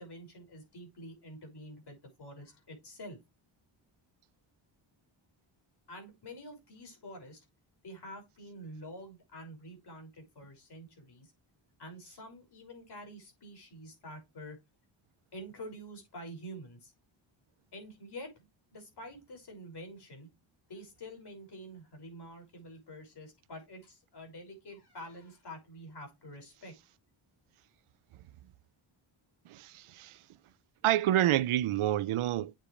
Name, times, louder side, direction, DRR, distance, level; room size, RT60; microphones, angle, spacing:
voice 1, 0.0-3.2 5.9-7.4 7.8-11.3 11.8-14.6 15.3-16.9 17.7-18.3 18.7-20.3 20.7-26.7, equal, 55° left, 6.0 m, -47 dB
voice 2, 29.5-30.1 30.8-32.5, right 13 dB, 90° right, 0.7 m, -28 dB
8.8 x 7.5 x 3.2 m
wide cardioid pair, 120°, 49 cm